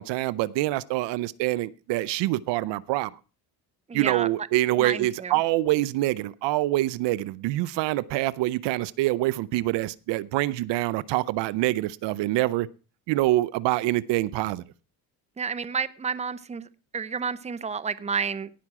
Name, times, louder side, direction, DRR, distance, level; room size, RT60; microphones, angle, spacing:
voice 1, 0.0-3.1 3.9-12.7 13.1-14.6, right 17 dB, 75° right, 0.6 m, -25 dB
voice 2, 3.9-4.3 4.8-5.3 15.4-16.7 16.9-18.5, right 6 dB, 15° right, 0.7 m, -30 dB
17.5 x 6.0 x 4.7 m
cardioid pair, 90°, 43 cm